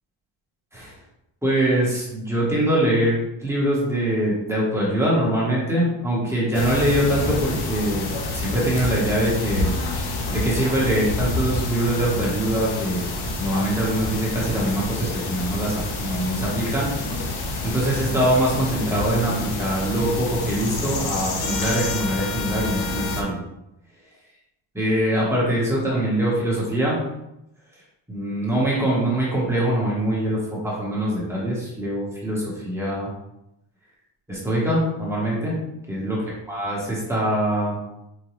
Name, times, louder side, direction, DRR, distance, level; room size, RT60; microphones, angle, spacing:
voice 1, 1.4-8.1 8.3-9.7 10.3-13.1 13.4-16.9 17.6-23.4 24.7-27.0 28.1-33.1 34.3-35.6 35.9-36.2 36.5-37.8, right 1 dB, 5° right, -6 dB, 0.9 m, -23 dB
sound 1, 6.5-23.2, left 3 dB, 55° left, 0.7 m, -28 dB
4.9 x 2.2 x 2.9 m, 0.86 s
cardioid pair, 160°, 47 cm